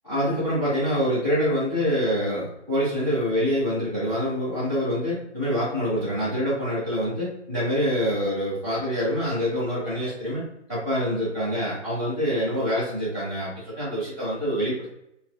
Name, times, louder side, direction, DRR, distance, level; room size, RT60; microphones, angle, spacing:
voice 1, 0.0-10.4 10.7-14.9, equal, ahead, -22 dB, 0.4 m, -26 dB
2.8 x 2.3 x 2.6 m, 0.81 s
figure-of-eight pair, 135°, 36 cm